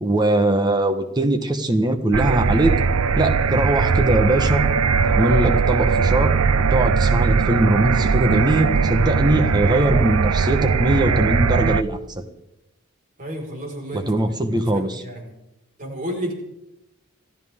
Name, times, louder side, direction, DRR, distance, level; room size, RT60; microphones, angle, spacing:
voice 1, 0.0-2.7 3.2-4.6 5.1-6.3 6.7-12.2 13.9-15.0, right 1 dB, 20° right, 8 dB, 1.2 m, -21 dB
sound 1, 2.1-11.8, right 5 dB, 70° right, 0.6 m, -19 dB
voice 2, 13.2-15.3 15.8-16.3, equal, 35° right, 0 dB, 4.8 m, -32 dB
28.0 x 13.5 x 3.7 m, 0.86 s
head